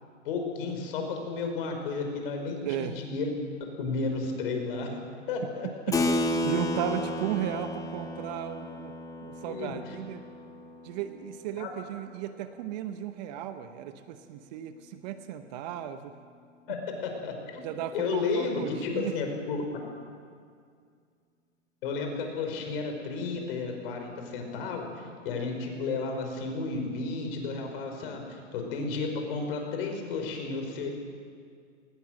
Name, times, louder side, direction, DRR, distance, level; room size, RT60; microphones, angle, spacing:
voice 1, 0.2-3.3 3.8-5.0 5.3-5.7 9.4-10.0 11.6-11.7 16.7-17.6 17.9-19.6 21.8-30.9, left 4 dB, 45° left, 3 dB, 5.2 m, -32 dB
voice 2, 2.6-3.0 5.6-6.0 6.4-8.9 9.2-10.2 10.8-16.1 17.6-19.2, right 10 dB, 35° right, 10 dB, 1.0 m, -35 dB
Keyboard (musical), 5.9-11.9, left 1 dB, 10° left, 1.4 m, -33 dB
19.5 x 19.5 x 7.7 m, 2.1 s
hypercardioid pair, 130°, 38 cm